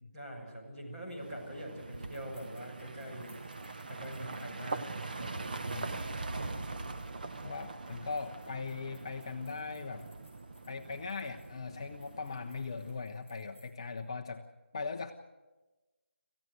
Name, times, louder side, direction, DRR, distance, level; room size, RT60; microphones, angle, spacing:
voice 1, 0.1-3.3 3.9-5.5, right 1 dB, 25° right, -3 dB, 6.3 m, -44 dB
sound 1, 1.2-13.0, right 3 dB, 40° right, 1.0 m, -42 dB
sound 2, 1.9-14.0, left 1 dB, 10° right, 6.5 m, -67 dB
voice 2, 5.7-6.0 7.4-10.0 10.7-14.4 14.7-15.1, left 4 dB, 25° left, 3 dB, 0.7 m, -39 dB
26.5 x 15.5 x 8.0 m, 1.2 s
figure-of-eight pair, 175°, 7 cm